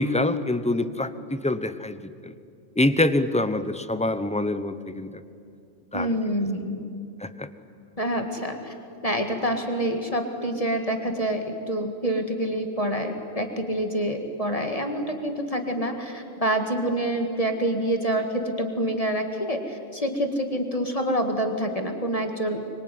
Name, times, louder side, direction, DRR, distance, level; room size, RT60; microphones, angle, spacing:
voice 1, 0.0-2.3 2.8-5.2 5.9-6.1 7.2-7.5, left 2 dB, 5° left, 11 dB, 0.8 m, -25 dB
voice 2, 5.9-6.9 8.0-8.7 9.0-22.8, right 1 dB, 30° left, 4 dB, 2.2 m, -27 dB
25.0 x 23.5 x 9.3 m, 2.5 s
omnidirectional pair, 1.3 m